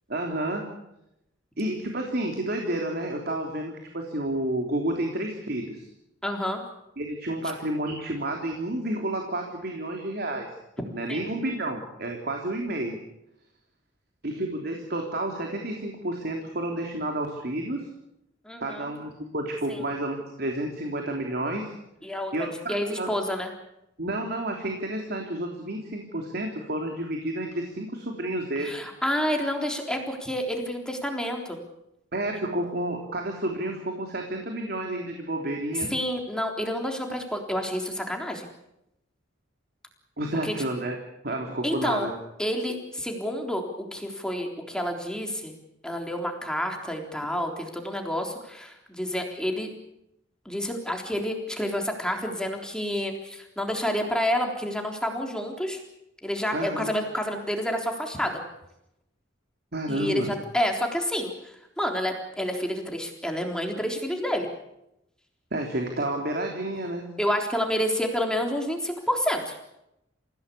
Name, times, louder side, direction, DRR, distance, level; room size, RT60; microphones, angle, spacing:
voice 1, 0.1-0.6 1.6-5.9 7.0-10.5 10.9-13.0 14.2-17.9 18.6-21.7 22.3-23.1 24.0-28.7 32.1-35.9 40.2-41.0 41.2-42.1 56.5-56.9 59.7-60.3 65.5-67.0, right 1 dB, 55° right, 2 dB, 3.3 m, -30 dB
voice 2, 6.2-6.6 11.1-11.2 18.5-18.9 19.7-19.8 22.0-23.5 28.6-31.6 35.9-38.5 40.4-40.6 41.6-42.1 42.4-43.7 43.9-45.5 45.8-49.7 50.5-55.8 56.2-58.4 59.9-64.5 67.2-69.6, equal, 5° left, 2 dB, 3.6 m, -29 dB
28.5 x 16.5 x 8.5 m, 0.86 s
head